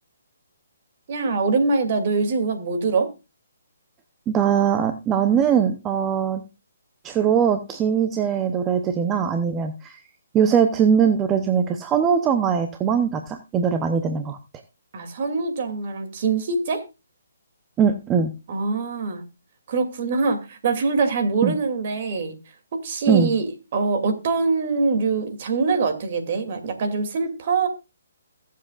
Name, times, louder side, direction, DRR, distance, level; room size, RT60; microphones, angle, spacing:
voice 1, 1.1-3.1 14.9-16.8 18.5-19.2 19.7-22.4 22.7-27.7, right 4 dB, 45° right, 6 dB, 2.6 m, -23 dB
voice 2, 4.3-6.4 7.0-10.0 10.3-14.4 17.8-18.3 21.4-21.6 23.1-23.3, right 7 dB, 15° right, 7 dB, 0.8 m, -21 dB
21.5 x 7.5 x 2.4 m, 0.28 s
hypercardioid pair, 155°, 0 cm